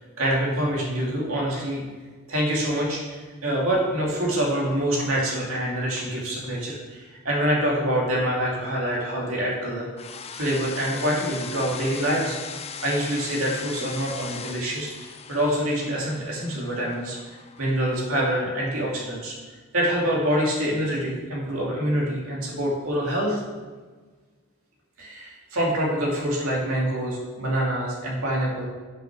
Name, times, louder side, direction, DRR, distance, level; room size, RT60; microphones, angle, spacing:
voice 1, 0.2-1.8 2.3-9.9 10.3-12.4 12.8-17.2 17.6-19.3 19.7-23.4 25.0-28.7, equal, 70° right, -4 dB, 2.6 m, -26 dB
sound 1, 10.0-18.1, left 6 dB, 30° left, 0.5 m, -39 dB
7.4 x 6.2 x 6.1 m, 1.4 s
head